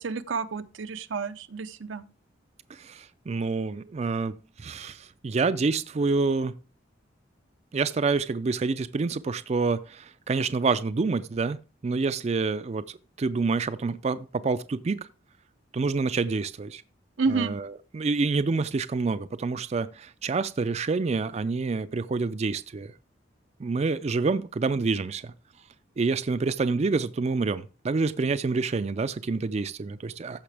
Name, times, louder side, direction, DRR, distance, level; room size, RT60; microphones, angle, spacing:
voice 1, 0.0-2.0 17.2-17.5, right 4 dB, 90° right, 0.7 m, -29 dB
voice 2, 2.7-6.5 7.7-11.6 11.8-15.1 15.7-16.8 17.3-22.9 23.6-25.3 26.0-30.4, right 4 dB, 35° right, 0.4 m, -27 dB
14.5 x 5.7 x 3.4 m
head